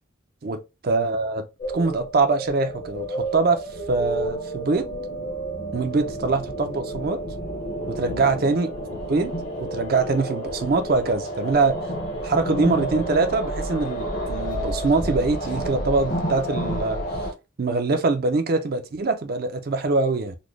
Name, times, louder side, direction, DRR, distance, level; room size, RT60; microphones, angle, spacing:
voice 1, 0.4-1.5 1.7-3.6 3.9-4.9 5.7-7.2 7.9-8.7 9.1-9.3 9.6-11.8 12.2-17.0 17.6-20.4, right 3 dB, 50° right, 0.4 m, -23 dB
sound 1, 1.6-17.3, right 1 dB, 45° left, 0.9 m, -30 dB
4.0 x 2.1 x 3.1 m
head